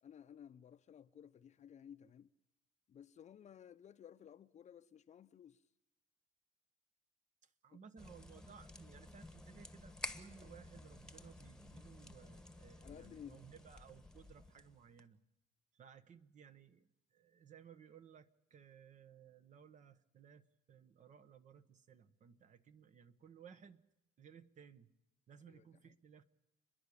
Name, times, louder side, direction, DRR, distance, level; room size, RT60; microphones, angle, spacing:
voice 1, 0.0-2.3 2.9-5.7 7.7-7.8 12.8-13.4 25.5-25.9, left 9 dB, 45° left, 0.7 m, -56 dB
voice 2, 7.4-15.2 15.7-23.8 24.2-24.9 25.3-26.2, right 7 dB, 45° right, 1.2 m, -59 dB
sound 1, 8.0-15.0, left 1 dB, 5° left, 1.3 m, -52 dB
30.0 x 11.0 x 8.6 m
cardioid pair, 110°, 17 cm